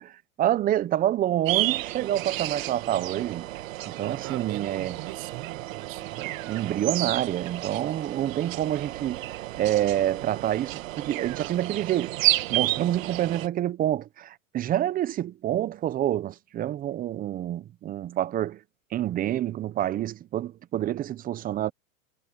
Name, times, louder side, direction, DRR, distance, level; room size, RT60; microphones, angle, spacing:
voice 1, 0.0-3.5 3.9-5.0 6.2-12.2 12.5-18.6 18.9-21.7, right 12 dB, 20° right, 0.6 m, -27 dB
sound 1, 1.5-13.5, right 16 dB, 75° right, 2.0 m, -31 dB
voice 2, 4.0-6.3, right 21 dB, 45° right, 6.6 m, -40 dB
supercardioid pair, 130°, 41 cm